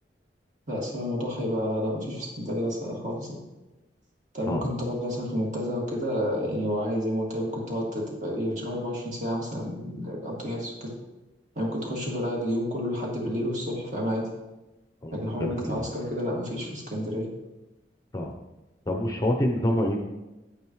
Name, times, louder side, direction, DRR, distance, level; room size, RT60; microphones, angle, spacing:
voice 1, 0.7-3.3 4.3-10.9 11.6-14.2 15.1-17.2, equal, 40° right, -2 dB, 2.2 m, -30 dB
voice 2, 15.4-15.8 18.1-18.3 18.9-20.0, left 1 dB, 20° left, 3 dB, 0.7 m, -26 dB
8.9 x 8.8 x 3.1 m, 1.0 s
head